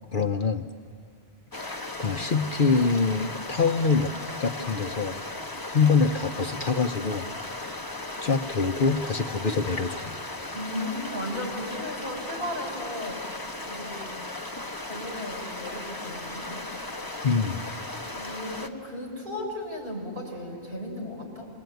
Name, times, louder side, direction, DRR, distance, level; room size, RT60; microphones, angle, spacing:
voice 1, 0.1-0.7 1.6-4.1 4.4-5.2 5.7-7.3 8.2-10.1 17.2-17.6, left 4 dB, 55° left, 6 dB, 0.9 m, -25 dB
sound 1, 1.5-18.7, left 2 dB, 20° left, 1.1 m, -36 dB
voice 2, 10.5-13.2 13.6-14.1 14.8-16.6 18.1-21.5, left 1 dB, 50° right, -1 dB, 6.3 m, -35 dB
27.0 x 22.0 x 9.2 m, 2.2 s
omnidirectional pair, 1.1 m